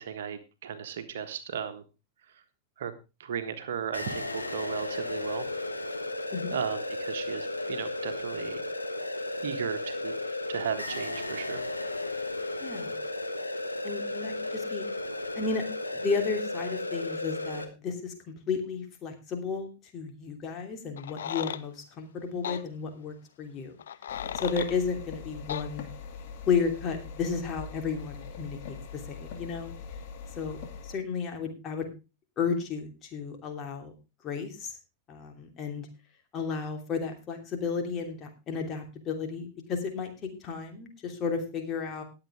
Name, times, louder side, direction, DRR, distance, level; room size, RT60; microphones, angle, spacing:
voice 1, 0.0-1.8 2.8-2.9 3.2-5.5 6.5-8.6 9.4-10.1 10.5-11.7, right 8 dB, 60° right, 8 dB, 1.5 m, -35 dB
sound 1, 3.9-17.6, left 2 dB, 85° left, 1.4 m, -34 dB
voice 2, 12.6-13.0 13.8-14.8 15.3-15.6 15.9-18.1 18.5-19.7 19.9-23.8 24.3-25.9 26.5-29.7 30.4-30.6 30.8-31.9 32.4-33.9 34.2-34.8 35.1-35.9 36.3-40.1 40.4-42.0, left 5 dB, 30° left, 4 dB, 3.0 m, -33 dB
sound 2, 21.0-21.6 22.4-22.6 23.8-24.7 25.5-25.7, left 9 dB, 65° left, 0.6 m, -35 dB
sound 3, 24.1-31.0, left 5 dB, 45° left, 2.6 m, -42 dB
20.0 x 7.8 x 3.5 m, 0.28 s
figure-of-eight pair, 90°, 0 cm